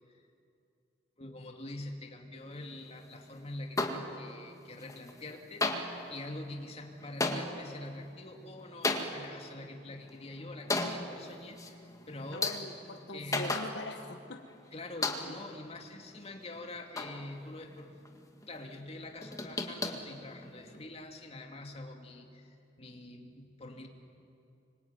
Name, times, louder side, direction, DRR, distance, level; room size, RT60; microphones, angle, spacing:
voice 1, 1.2-12.6 13.1-13.5 14.7-17.9 18.5-23.9, left 2 dB, 35° left, 2 dB, 2.7 m, -45 dB
sound 1, 3.8-4.5 4.8-5.3 5.6-14.2 14.5-14.6 15.0-15.6 16.0-17.8 18.1-18.5 18.9-20.8, left 2 dB, 20° left, 1.9 m, -36 dB
voice 2, 12.3-14.4 15.2-15.3, left 2 dB, 70° left, 5 dB, 1.4 m, -42 dB
25.5 x 24.0 x 9.4 m, 2.6 s
head